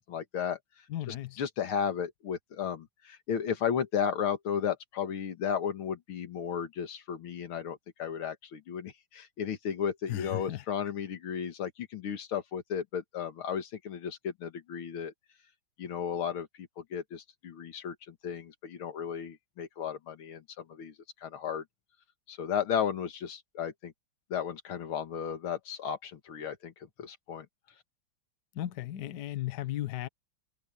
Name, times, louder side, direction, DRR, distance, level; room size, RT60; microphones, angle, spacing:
voice 1, 0.1-0.6 1.1-15.1 15.8-20.9 21.2-21.6 22.3-23.9 24.3-26.7 27.0-27.5, left 8 dB, 80° left, 2.4 m, -34 dB
voice 2, 0.9-1.4 10.1-10.6 28.5-30.1, left 13 dB, 60° left, 1.4 m, -35 dB
omnidirectional pair, 2.3 m